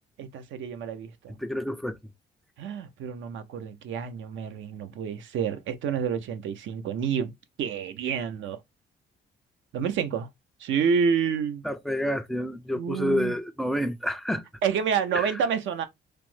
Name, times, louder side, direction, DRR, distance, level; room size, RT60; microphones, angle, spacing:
voice 1, 0.2-1.4 2.6-7.3 7.6-8.6 9.7-10.3 10.6-11.6 12.8-13.4 14.6-15.8, right 7 dB, 75° right, 0.6 m, -28 dB
voice 2, 1.4-2.0 11.6-14.4 15.1-15.3, equal, ahead, 0.3 m, -28 dB
3.2 x 2.0 x 3.0 m
cardioid pair, 90°, 20 cm